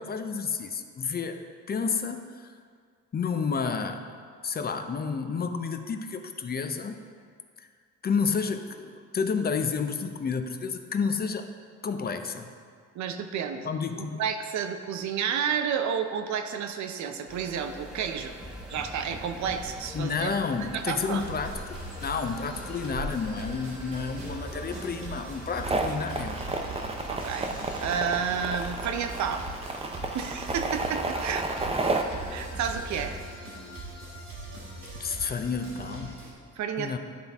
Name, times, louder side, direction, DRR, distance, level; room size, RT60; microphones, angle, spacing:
voice 1, 0.0-2.5 3.1-4.1 4.4-7.0 7.6-7.7 8.0-11.5 11.8-12.5 13.6-14.2 19.9-21.6 22.0-26.4 35.0-36.2 36.8-37.0, left 5 dB, 30° left, 7 dB, 0.5 m, -30 dB
voice 2, 12.9-13.7 14.0-18.3 18.7-21.3 27.1-27.5 27.8-29.5 30.1-31.6 32.3-33.2 36.6-37.0, right 7 dB, 70° right, 7 dB, 0.7 m, -31 dB
sound 1, 17.3-33.2, equal, 5° right, 0.9 m, -43 dB
sound 2, 21.1-36.3, right 2 dB, 85° right, 1.9 m, -41 dB
sound 3, 25.6-32.0, right 3 dB, 20° right, 0.6 m, -31 dB
11.0 x 4.0 x 3.5 m, 2.1 s
cardioid pair, 90°, 30 cm